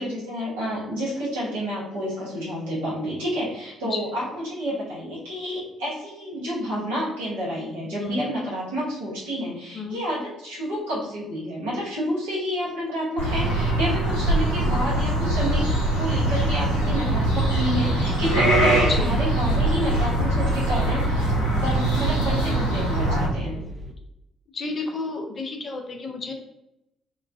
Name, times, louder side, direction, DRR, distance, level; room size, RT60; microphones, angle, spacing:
voice 1, 0.0-15.7 15.9-23.6, equal, 80° right, -9 dB, 1.0 m, -29 dB
sound 1, 13.2-23.3, right 1 dB, 85° left, 0.7 m, -22 dB
sound 2, 17.3-23.9, right 3 dB, 35° right, 0.4 m, -38 dB
voice 2, 24.5-26.3, left 3 dB, 45° left, 2 dB, 0.6 m, -31 dB
2.9 x 2.2 x 2.5 m, 0.85 s
figure-of-eight pair, 45°, 0 cm